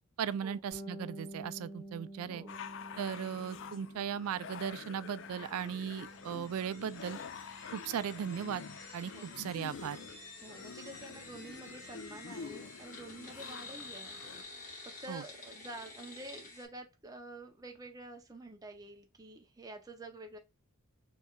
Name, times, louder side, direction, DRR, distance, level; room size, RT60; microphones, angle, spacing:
voice 1, 0.2-2.4 3.0-7.2 7.7-8.7 8.9-10.0 15.1-15.2, right 8 dB, 80° right, 0.3 m, -37 dB
Bass guitar, 0.7-10.3, right 1 dB, 15° left, 2.5 m, -51 dB
voice 2, 2.2-2.7 9.1-9.5 10.4-14.2 14.8-20.4, right 2 dB, 15° right, 0.6 m, -49 dB
sound 1, 2.5-14.4, left 6 dB, 55° left, 0.4 m, -48 dB
sound 2, 5.5-16.7, left 3 dB, 35° left, 1.4 m, -51 dB
4.4 x 3.2 x 2.3 m
head